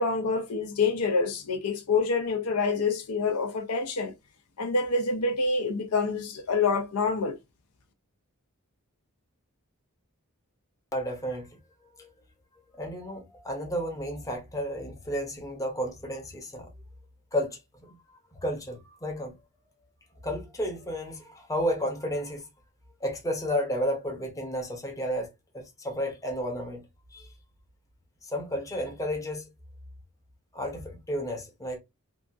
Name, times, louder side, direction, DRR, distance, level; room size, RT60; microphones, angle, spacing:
voice 1, 0.0-4.1 4.6-7.3, left 4 dB, 75° left, 0.6 m, -27 dB
voice 2, 10.9-11.6 12.0-12.1 12.7-16.7 17.3-19.3 20.2-22.5 23.0-25.3 25.5-26.8 27.1-27.3 28.2-29.5 30.5-31.8, equal, 15° left, 0.7 m, -32 dB
2.8 x 2.3 x 2.5 m
head